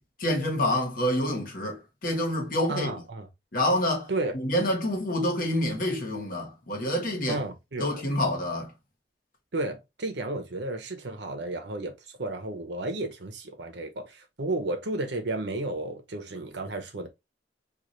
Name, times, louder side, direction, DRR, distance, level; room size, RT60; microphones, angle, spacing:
voice 1, 0.2-2.9 3.5-7.4 7.8-8.7, left 1 dB, 50° left, 1.1 m, -27 dB
voice 2, 2.7-3.3 4.1-4.3 7.3-7.9 9.5-17.1, right 2 dB, 75° right, 0.8 m, -32 dB
3.9 x 2.4 x 3.0 m
head